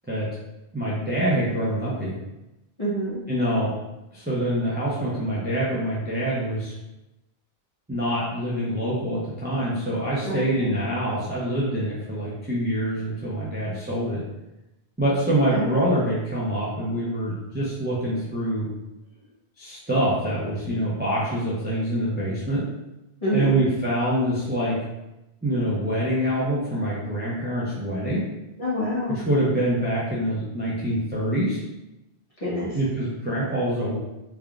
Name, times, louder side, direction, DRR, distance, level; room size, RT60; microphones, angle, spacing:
voice 1, 0.7-2.2 3.3-3.7 4.1-6.7 7.9-14.2 15.0-18.7 19.6-22.6 23.3-24.8 25.4-28.2 29.1-31.6 32.7-34.0, right 1 dB, 10° right, -7 dB, 0.6 m, -25 dB
voice 2, 2.8-3.2 10.2-10.7 15.3-15.7 23.2-23.6 28.6-29.2 32.4-32.8, equal, 35° left, -9 dB, 1.3 m, -27 dB
3.5 x 3.5 x 2.4 m, 0.96 s
omnidirectional pair, 1.1 m